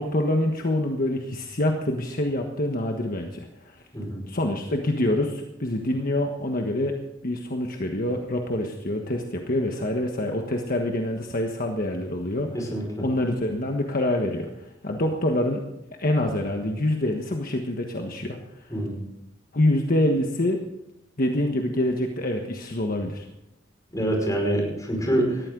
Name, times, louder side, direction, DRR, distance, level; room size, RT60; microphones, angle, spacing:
voice 1, 0.0-3.8 4.2-6.9 7.2-12.5 13.0-15.6 16.0-18.7 19.5-20.6 21.2-23.3, left 1 dB, 50° left, 3 dB, 1.4 m, -26 dB
voice 2, 12.5-13.0 18.7-19.0 23.9-25.5, right 1 dB, 20° left, 0 dB, 5.4 m, -26 dB
19.5 x 14.5 x 3.9 m, 0.90 s
head